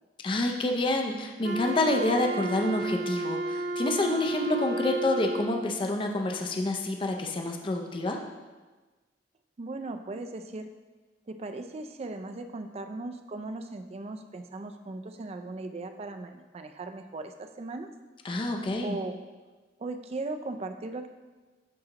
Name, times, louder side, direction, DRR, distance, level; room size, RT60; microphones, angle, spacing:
voice 1, 0.2-8.2 18.2-19.0, left 2 dB, 30° left, 3 dB, 0.4 m, -28 dB
Wind instrument woodwind instrument, 1.4-5.7, right 1 dB, 75° right, 0.7 m, -32 dB
voice 2, 9.6-10.7 11.3-17.9 18.8-19.2 19.8-21.1, right 2 dB, 35° right, 7 dB, 0.4 m, -38 dB
9.9 x 3.8 x 2.9 m, 1.3 s
head